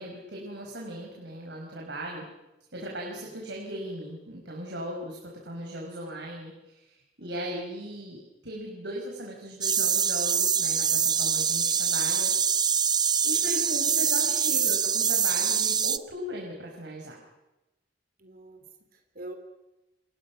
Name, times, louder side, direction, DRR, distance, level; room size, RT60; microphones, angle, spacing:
voice 1, 0.0-2.3 2.7-12.3 13.2-17.2, right 1 dB, 75° right, -1 dB, 5.5 m, -38 dB
voice 2, 7.2-7.5 13.3-14.6 18.2-18.6 18.9-19.4, right 2 dB, 55° right, 5 dB, 3.3 m, -46 dB
sound 1, 9.6-16.0, right 7 dB, 25° right, 0.8 m, -24 dB
29.5 x 26.0 x 6.1 m, 0.98 s
head